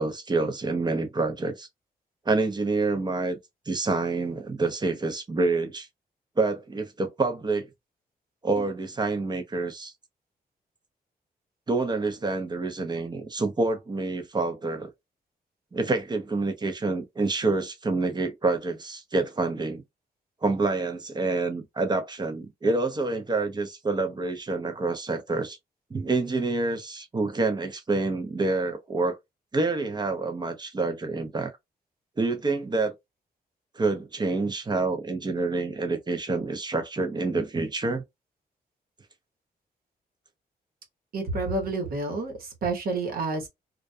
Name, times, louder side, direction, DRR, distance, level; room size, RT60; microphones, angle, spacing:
voice 1, 0.0-1.7 2.3-3.4 3.7-5.9 6.4-7.7 8.4-9.9 11.7-14.9 15.7-19.8 20.4-25.6 25.9-29.2 29.5-31.5 32.2-32.9 33.8-38.0, right 3 dB, 25° right, 0.6 m, -27 dB
voice 2, 41.1-43.5, right 3 dB, 70° right, 1.1 m, -29 dB
2.3 x 2.2 x 2.5 m
cardioid pair, 110°, 16 cm